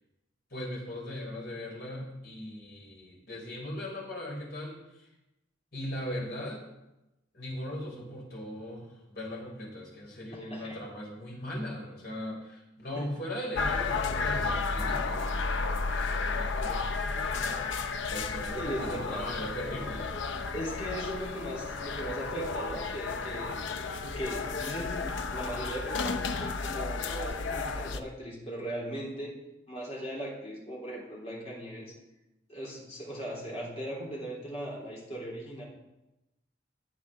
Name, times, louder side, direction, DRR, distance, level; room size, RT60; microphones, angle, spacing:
voice 1, 0.5-5.1 5.7-6.6 7.3-20.1, left 1 dB, 55° left, -2 dB, 4.5 m, -39 dB
voice 2, 10.3-10.8 13.0-13.1 18.6-19.3 20.5-23.6 24.2-29.3 29.7-31.9 32.5-35.6, equal, 35° left, -4 dB, 3.7 m, -38 dB
sound 1, 13.5-28.0, left 4 dB, 80° left, 0.7 m, -32 dB
16.0 x 8.9 x 3.8 m, 0.93 s
head